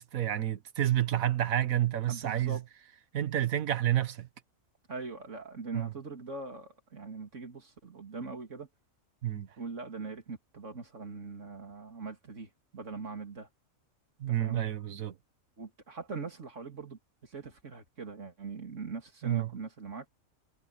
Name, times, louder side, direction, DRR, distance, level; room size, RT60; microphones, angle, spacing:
voice 1, 0.0-2.6 3.1-4.3 5.7-5.9 9.2-9.5 14.2-15.1 19.2-19.5, right 12 dB, 75° right, 1.4 m, -29 dB
voice 2, 2.1-2.6 4.9-8.7 9.6-13.5 14.4-14.6 15.6-20.0, right 4 dB, 60° right, 3.2 m, -41 dB
omnidirectional pair, 1.4 m